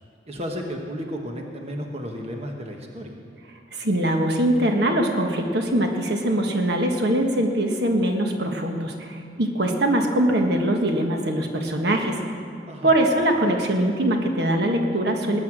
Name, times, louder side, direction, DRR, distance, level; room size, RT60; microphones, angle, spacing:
voice 1, 0.3-3.2 12.7-12.9, equal, 35° right, 2 dB, 1.3 m, -33 dB
voice 2, 3.7-12.2 12.8-15.4, right 1 dB, 65° right, 3 dB, 1.4 m, -22 dB
19.5 x 9.6 x 6.2 m, 2.3 s
head